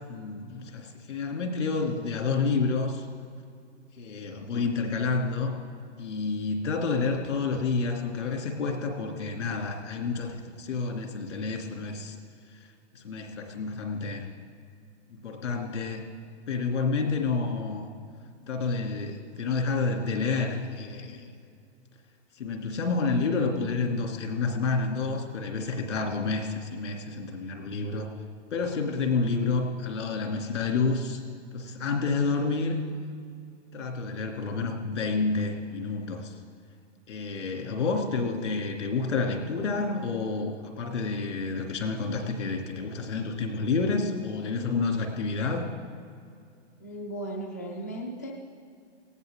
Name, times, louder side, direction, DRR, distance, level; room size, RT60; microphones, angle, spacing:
voice 1, 0.1-3.1 4.0-5.5 6.0-12.2 12.9-14.3 15.1-16.0 16.5-17.9 18.5-21.2 22.4-28.1 28.5-31.2 31.5-32.8 33.7-36.4 37.1-45.7, left 4 dB, 80° left, 2 dB, 2.9 m, -29 dB
voice 2, 46.8-48.3, right 1 dB, 15° left, 0 dB, 0.3 m, -36 dB
18.5 x 14.5 x 3.7 m, 2.3 s
hypercardioid pair, 165°, 36 cm